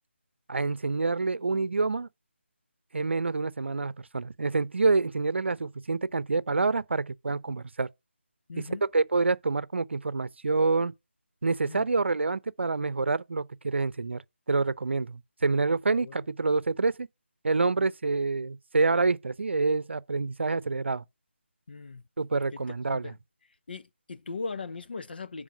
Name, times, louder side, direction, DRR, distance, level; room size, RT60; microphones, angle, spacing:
voice 1, 0.5-2.1 2.9-7.9 8.7-10.9 11.4-14.2 14.5-17.1 17.4-21.0 22.2-23.1, right 3 dB, 70° right, 0.7 m, -27 dB
voice 2, 8.5-8.8 11.6-11.9 16.0-16.1 21.7-22.0 22.5-22.6 22.9-23.1 23.7-25.4, left 4 dB, 50° left, 0.7 m, -39 dB
10.0 x 3.6 x 6.2 m
figure-of-eight pair, 165°, 7 cm